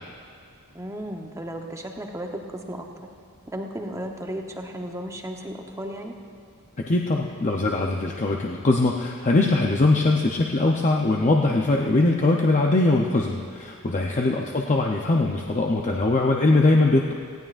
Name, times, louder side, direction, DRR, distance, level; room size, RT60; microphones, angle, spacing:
voice 1, 0.7-2.9 3.5-6.1 14.3-14.5, right 1 dB, 15° right, 2 dB, 0.9 m, -34 dB
voice 2, 6.8-17.1, left 2 dB, 35° left, 0 dB, 0.6 m, -21 dB
18.0 x 16.0 x 2.5 m, 2.4 s
head